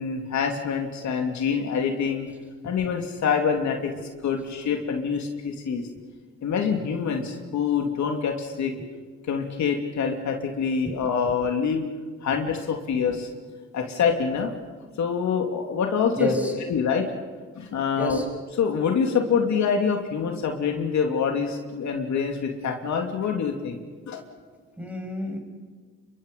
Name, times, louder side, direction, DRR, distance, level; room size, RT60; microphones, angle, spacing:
voice 1, 0.0-2.3 2.6-3.9 4.2-5.8 6.4-8.7 9.3-11.8 12.2-13.3 13.7-14.5 15.0-16.3 16.7-17.1 17.5-18.2 18.6-23.8 24.1-24.2, left 6 dB, 70° left, 3 dB, 2.9 m, -25 dB
voice 2, 16.2-16.5 18.0-18.3 24.7-25.4, equal, 5° right, 2 dB, 6.5 m, -29 dB
28.5 x 23.5 x 5.5 m, 1.5 s
cardioid pair, 90°, 30 cm